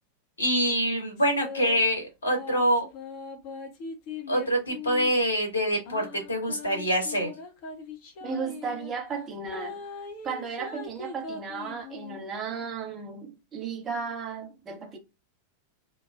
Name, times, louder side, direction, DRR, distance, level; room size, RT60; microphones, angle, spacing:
voice 1, 0.4-2.8 4.3-7.3, equal, 75° left, 1.4 m, -25 dB
sound 1, 1.2-1.8 2.3-5.2 5.9-8.9 9.5-12.2, left 5 dB, 45° left, 0.8 m, -40 dB
voice 2, 8.2-9.8 10.2-15.0, right 5 dB, 25° right, 0.9 m, -35 dB
2.9 x 2.2 x 2.4 m
figure-of-eight pair, 90°, 0 cm